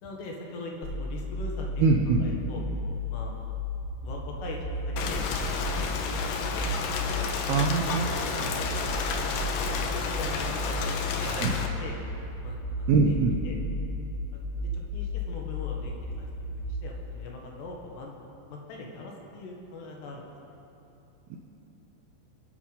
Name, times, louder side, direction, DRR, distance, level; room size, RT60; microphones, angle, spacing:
voice 1, 0.0-2.6 3.1-3.5 4.0-5.9 6.3-6.7 7.1-8.6 9.5-11.0 11.3-12.0 12.4-13.2 13.4-13.5 14.3-18.1 18.5-20.6, left 2 dB, 70° left, 0 dB, 3.4 m, -42 dB
sound 1, 0.8-16.8, left 2 dB, 45° left, 1.5 m, -33 dB
voice 2, 1.8-2.2 7.5-8.1 11.2-11.5 12.9-13.4 21.3-21.4, right 4 dB, 80° right, 2 dB, 2.3 m, -23 dB
Rain, 5.0-11.7, left 5 dB, 85° left, 1.9 m, -31 dB
24.5 x 8.3 x 5.5 m, 2.9 s
omnidirectional pair, 5.4 m